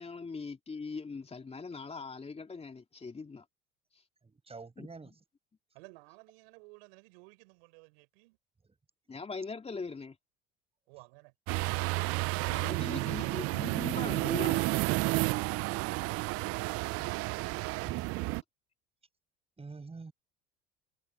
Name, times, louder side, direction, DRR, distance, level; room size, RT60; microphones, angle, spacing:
voice 1, 0.0-3.4 4.8-4.9 9.1-10.1 12.5-14.6, left 4 dB, 20° left, 3.1 m, -41 dB
voice 2, 4.2-5.1 8.6-8.7 19.6-20.1, right 4 dB, 20° right, 7.7 m, -47 dB
voice 3, 5.7-8.4 10.9-11.3 12.6-13.3, right 29 dB, 75° right, 5.7 m, -54 dB
sound 1, 11.5-18.4, right 23 dB, 55° right, 0.4 m, -31 dB
hypercardioid pair, 80°, 29 cm